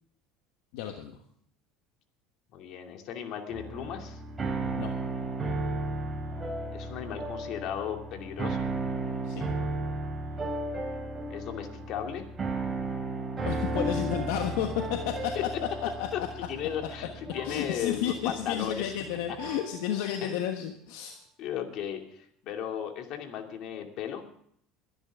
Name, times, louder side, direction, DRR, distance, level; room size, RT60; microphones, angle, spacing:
voice 1, 0.7-1.2 4.8-4.9 9.2-9.4 13.4-15.4 16.0-16.3 17.4-21.2, left 10 dB, 80° left, 4 dB, 1.3 m, -32 dB
voice 2, 2.5-4.2 6.7-8.7 11.3-12.2 15.3-15.4 16.1-18.9 20.2-20.4 21.4-24.2, left 9 dB, 60° left, 4 dB, 2.6 m, -36 dB
sound 1, 3.5-19.7, right 2 dB, 20° right, 4.9 m, -34 dB
22.0 x 10.5 x 3.7 m, 0.65 s
supercardioid pair, 95°, 0 cm